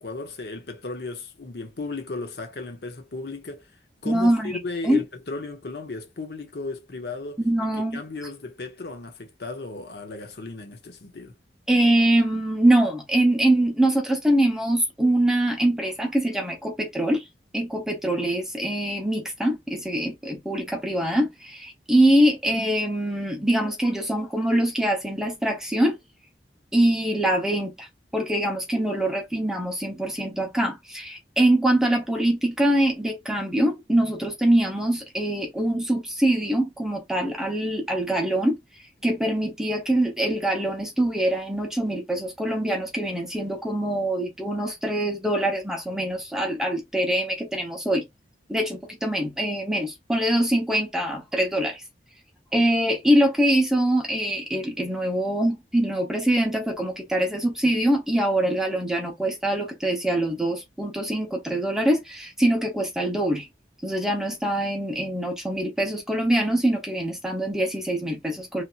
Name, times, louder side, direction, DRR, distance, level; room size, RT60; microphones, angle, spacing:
voice 1, 0.0-3.7 4.0-7.4 7.8-11.4, left 3 dB, 65° left, 0.8 m, -35 dB
voice 2, 4.0-4.6 4.8-5.0 7.4-8.0 11.7-17.2 17.5-26.0 26.7-38.6 39.0-48.0 48.5-51.8 52.5-63.5 63.8-68.6, right 1 dB, 5° right, 0.9 m, -23 dB
3.3 x 2.8 x 2.4 m
head